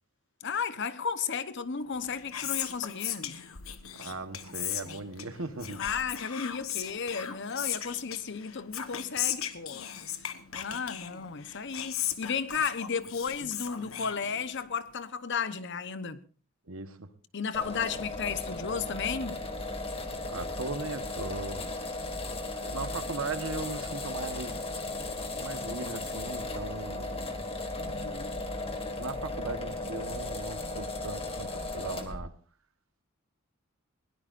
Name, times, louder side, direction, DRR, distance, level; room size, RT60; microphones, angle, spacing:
voice 1, 0.4-3.4 5.8-9.9 10.5-16.2 17.3-19.4 27.7-28.4, left 6 dB, 60° left, 1.0 m, -34 dB
Whispering, 1.9-14.7, left 10 dB, 85° left, 1.3 m, -37 dB
voice 2, 4.0-5.8 16.7-17.1 20.2-21.7 22.6-24.5 25.4-27.2 29.0-32.3, right 3 dB, 80° right, 1.3 m, -38 dB
sound 1, 17.5-32.2, left 2 dB, 30° left, 1.9 m, -36 dB
21.5 x 17.5 x 2.6 m
head